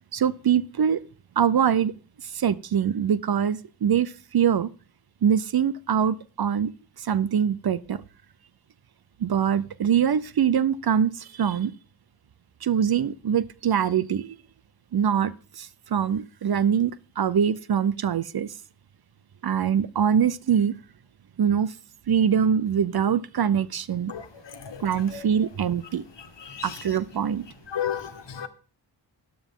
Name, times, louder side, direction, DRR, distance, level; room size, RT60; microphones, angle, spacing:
voice 1, 0.1-1.0 1.4-1.9 2.3-4.7 5.2-6.7 7.0-8.0 9.2-11.7 12.6-14.3 14.9-16.9 17.2-18.5 19.4-20.7 21.4-21.7 22.1-24.1 24.8-26.0 26.6-27.4, right 8 dB, 50° right, 0.7 m, -23 dB
voice 2, 24.1-24.8 25.1-25.2 26.4-26.8 27.7-28.5, left 8 dB, 60° left, 1.7 m, -33 dB
12.5 x 9.6 x 3.8 m
cardioid pair, 45°, 48 cm